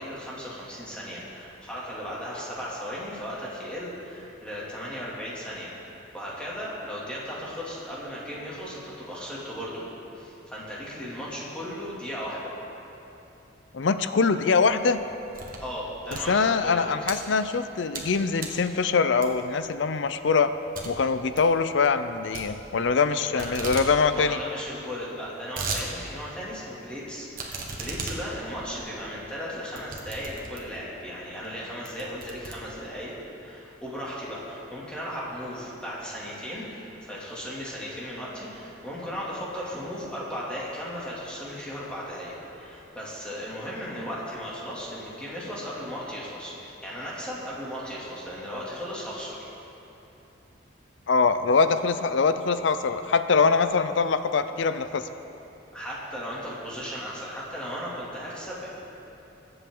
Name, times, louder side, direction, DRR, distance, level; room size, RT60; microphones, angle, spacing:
voice 1, 0.0-5.7 6.1-9.8 10.1-12.5 15.6-16.8 23.3-23.6 24.1-49.3 51.6-51.7 55.7-58.7, equal, 5° left, -7 dB, 2.5 m, -36 dB
voice 2, 13.7-15.0 16.3-20.5 20.9-24.4 51.1-55.0, left 4 dB, 65° left, 11 dB, 0.5 m, -23 dB
sound 1, 14.8-15.7 16.0-17.2 17.7-18.1 18.4-18.7 19.2-19.6 20.0-20.1 20.4-20.5 20.7-20.9 21.2-21.5 22.3-23.1 23.4-23.9 24.2-24.3 24.5-24.6 25.1-25.9 26.3-26.4 27.3-30.9 31.4-31.5 31.9-33.1, right 3 dB, 45° right, 1.5 m, -36 dB
21.5 x 8.0 x 3.8 m, 2.9 s
head